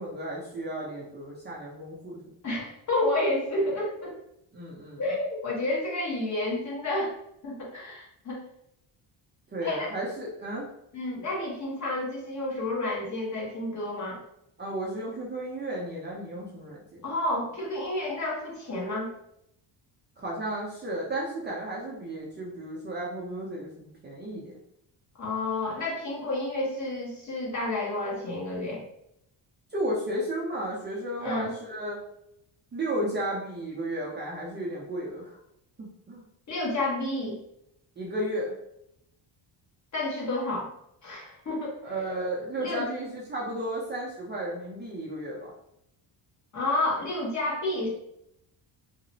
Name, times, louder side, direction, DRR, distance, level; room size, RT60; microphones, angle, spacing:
voice 1, 0.0-2.2 4.5-5.0 9.5-10.7 14.6-17.0 20.2-24.6 29.7-32.0 32.7-35.4 35.8-36.2 38.0-38.5 41.8-45.5, right 1 dB, 25° right, -5 dB, 0.5 m, -33 dB
voice 2, 2.4-4.1 5.0-7.1 7.4-8.4 9.6-9.9 10.9-14.2 17.0-19.1 25.2-28.8 31.2-31.5 36.5-37.4 39.9-40.7 41.0-41.8 42.6-42.9 46.5-47.9, left 2 dB, 40° left, -3 dB, 0.9 m, -30 dB
2.8 x 2.0 x 2.6 m, 0.77 s
cardioid pair, 130°, 45 cm